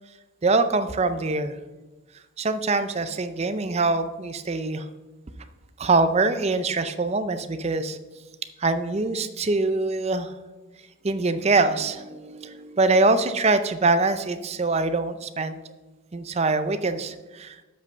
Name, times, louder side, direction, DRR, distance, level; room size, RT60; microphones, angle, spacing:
voice 1, 0.4-1.6 2.4-4.9 5.8-8.0 8.6-10.3 11.0-15.6 16.1-17.6, right 3 dB, 30° right, 10 dB, 0.5 m, -24 dB
7.8 x 5.4 x 6.6 m, 1.2 s
head